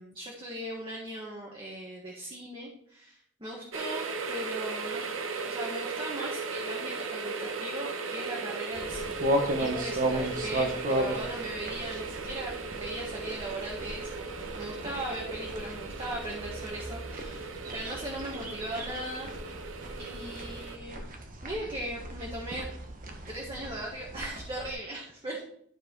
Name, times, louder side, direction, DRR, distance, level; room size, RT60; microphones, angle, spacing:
voice 1, 0.0-5.0 5.4-19.3 20.0-21.1 21.4-22.7 23.3-25.4, right 1 dB, 25° right, -3 dB, 1.7 m, -39 dB
sound 1, 3.7-20.8, right 4 dB, 70° right, 1.0 m, -37 dB
sound 2, 8.7-24.7, right 1 dB, 40° right, 1.3 m, -35 dB
12.0 x 4.8 x 4.7 m, 0.67 s
head